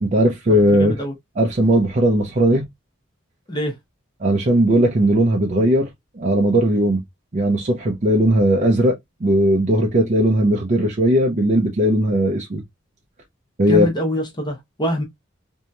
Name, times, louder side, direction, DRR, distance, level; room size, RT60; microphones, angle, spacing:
voice 1, 0.0-1.0 1.4-2.6 4.2-5.9 6.2-7.0 7.3-9.0 9.2-12.6 13.6-13.9, right 1 dB, 40° right, 0.5 m, -17 dB
voice 2, 0.7-1.1 3.5-3.7 13.7-15.0, equal, 20° left, 0.7 m, -24 dB
2.9 x 2.7 x 2.2 m
head